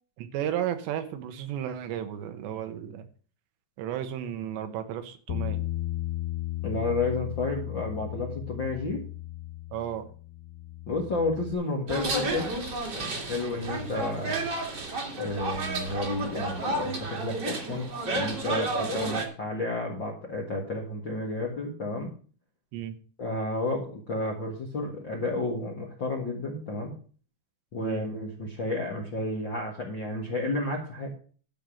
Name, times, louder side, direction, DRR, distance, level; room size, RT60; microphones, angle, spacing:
voice 1, 0.2-3.1 3.8-5.6 9.7-10.1 22.7-23.0 27.8-28.0, right 10 dB, 80° right, 9 dB, 3.2 m, -33 dB
Bass guitar, 5.3-11.5, left 15 dB, 80° left, 3.1 m, -35 dB
voice 2, 6.6-9.0 10.9-12.5 12.9-14.4 15.2-22.1 23.2-26.9 27.7-31.1, left 2 dB, 50° left, 0 dB, 1.4 m, -31 dB
sound 1, 11.9-19.2, right 2 dB, 35° right, 1.8 m, -31 dB
12.5 x 5.3 x 7.7 m, 0.42 s
omnidirectional pair, 5.1 m